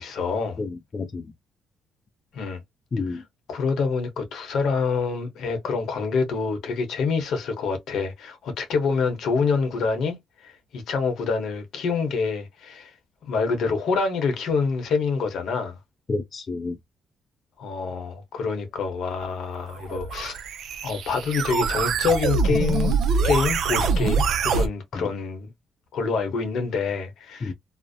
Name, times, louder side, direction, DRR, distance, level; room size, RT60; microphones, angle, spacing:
voice 1, 0.0-0.6 2.3-2.6 3.1-3.2 3.5-10.2 10.4-12.9 13.2-15.8 17.6-20.4 20.8-22.9 23.2-25.5 25.9-27.5, left 5 dB, 75° left, 0.8 m, -26 dB
voice 2, 0.6-1.3 2.9-3.2 16.1-16.8 25.0-25.1 27.4-27.5, left 3 dB, 40° left, 0.3 m, -30 dB
sound 1, 19.7-24.7, right 5 dB, 70° right, 0.4 m, -24 dB
2.5 x 2.0 x 2.5 m
cardioid pair, 90°, 0 cm